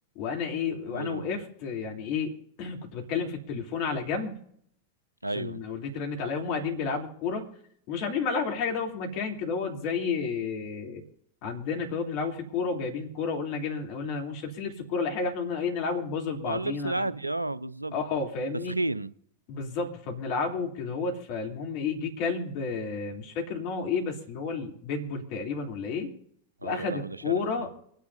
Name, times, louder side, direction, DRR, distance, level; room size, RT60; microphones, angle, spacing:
voice 1, 0.1-2.3 2.6-4.3 5.3-7.4 7.9-11.0 11.4-17.1 17.9-18.7 19.5-26.1 26.6-27.7, left 5 dB, 45° left, 2 dB, 3.2 m, -31 dB
voice 2, 0.9-1.3 5.2-5.6 16.5-18.0 18.7-19.1 26.6-27.7, right 2 dB, 85° right, 17 dB, 0.5 m, -32 dB
27.5 x 10.5 x 2.8 m, 0.68 s
figure-of-eight pair, 90°, 0 cm